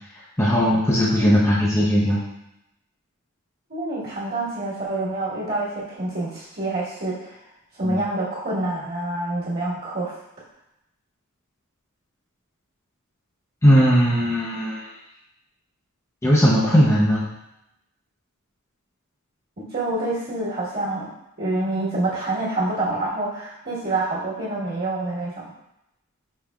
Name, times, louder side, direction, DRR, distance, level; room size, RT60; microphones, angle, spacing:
voice 1, 0.4-2.2 7.8-8.0 13.6-14.9 16.2-17.3, equal, 15° left, -6 dB, 0.6 m, -18 dB
voice 2, 3.7-7.3 7.8-10.1 19.6-21.1 21.4-25.5, right 2 dB, 50° right, -8 dB, 1.4 m, -27 dB
5.2 x 3.3 x 2.3 m, 0.85 s
head